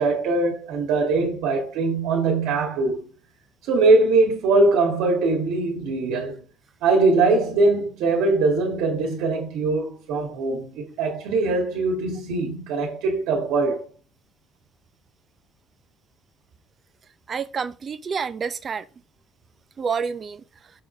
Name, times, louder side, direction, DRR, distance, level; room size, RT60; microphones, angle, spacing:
voice 1, 0.0-3.1 3.6-6.4 6.8-13.9, right 3 dB, 85° right, 1.9 m, -21 dB
voice 2, 17.3-18.9 19.8-20.4, right 6 dB, 35° right, 0.6 m, -28 dB
6.7 x 3.9 x 5.1 m
cardioid pair, 130°, 0 cm